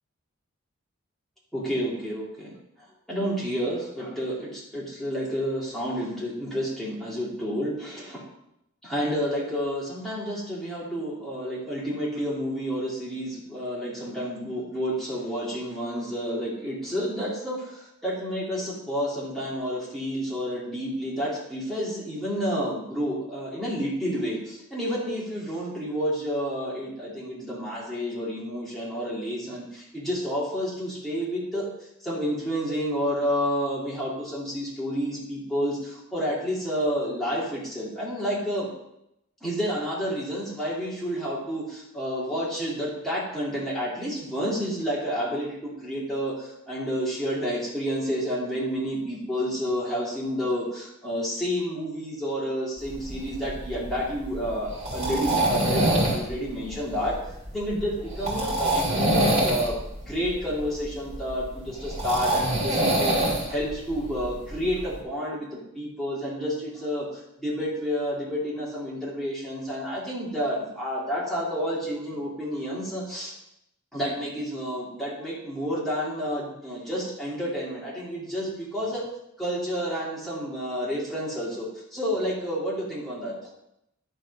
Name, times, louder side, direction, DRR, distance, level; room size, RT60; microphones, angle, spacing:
voice 1, 1.5-2.5 3.1-8.2 8.8-31.7 32.0-38.7 39.4-57.2 57.5-59.7 60.0-67.1 67.4-73.3 73.9-79.0 79.4-83.3, equal, ahead, -7 dB, 3.0 m, -30 dB
sound 1, 52.8-65.0, right 1 dB, 35° right, 3.3 m, -26 dB
11.0 x 5.1 x 5.5 m, 0.81 s
head